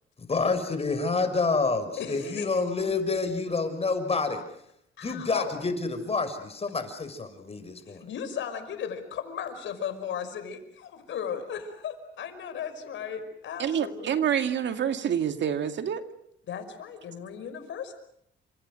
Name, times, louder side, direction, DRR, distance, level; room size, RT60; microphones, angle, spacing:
voice 1, 0.3-4.4 5.0-8.1, left 3 dB, 30° left, 8 dB, 6.3 m, -28 dB
voice 2, 2.0-2.7 5.0-5.5 7.9-14.1 16.5-17.9, left 8 dB, 75° left, 9 dB, 5.4 m, -36 dB
voice 3, 13.6-16.0, right 8 dB, 65° right, 8 dB, 2.2 m, -27 dB
29.5 x 26.5 x 6.6 m, 0.73 s
cardioid pair, 90°, 20 cm